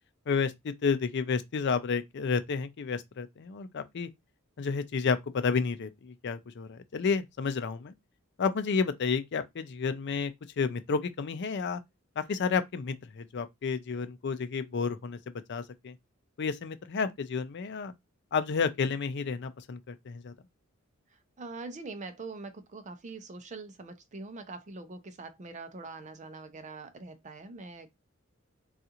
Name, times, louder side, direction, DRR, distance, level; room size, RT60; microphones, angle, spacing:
voice 1, 0.3-4.1 4.6-7.9 8.4-10.3 10.6-11.8 12.2-15.2 15.5-15.9 16.4-17.9 18.3-20.3, left 5 dB, 55° left, 0.4 m, -31 dB
voice 2, 21.4-27.9, right 3 dB, 35° right, 0.5 m, -43 dB
3.7 x 2.4 x 2.8 m
head